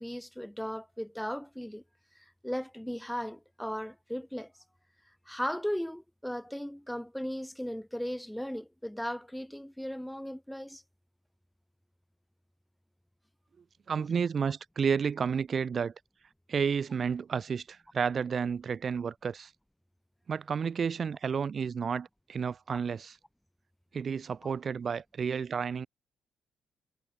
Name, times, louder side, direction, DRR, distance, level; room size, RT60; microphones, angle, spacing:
voice 1, 0.0-1.8 2.1-4.5 5.3-10.8 22.7-22.8 24.4-24.5, equal, 5° left, 1.1 m, -37 dB
voice 2, 13.9-15.9 16.5-19.5 20.3-23.2 23.9-25.9, right 6 dB, 45° right, 2.1 m, -31 dB
cardioid pair, 90°, 0 cm